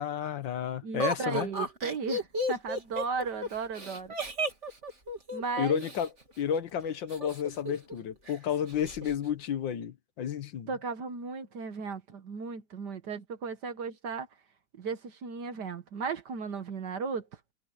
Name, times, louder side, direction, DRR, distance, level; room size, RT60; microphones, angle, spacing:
voice 1, 0.0-1.5 5.6-6.1 6.4-10.7, left 8 dB, 90° left, 1.9 m, -31 dB
voice 2, 0.8-4.1 5.3-5.8 10.7-14.3 14.8-17.3, right 5 dB, 65° right, 1.9 m, -35 dB
Laughter, 1.0-6.1 7.1-8.0 8.3-8.4 8.7-9.1, equal, 40° right, 3.5 m, -34 dB
omnidirectional pair, 2.0 m